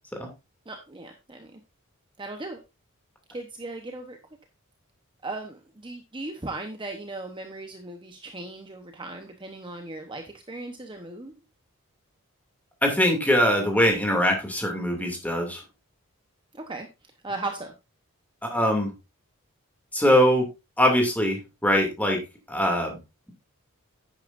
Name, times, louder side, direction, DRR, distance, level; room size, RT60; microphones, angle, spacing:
voice 1, 0.7-1.6 2.2-2.6 3.3-4.2 5.2-11.3 16.5-16.9 17.2-17.7, right 2 dB, 20° right, 4 dB, 0.9 m, -37 dB
voice 2, 12.8-15.6 18.5-18.9 19.9-20.4 20.8-22.2 22.5-23.0, equal, 5° left, 2 dB, 2.5 m, -22 dB
10.5 x 9.4 x 2.6 m, 0.25 s
head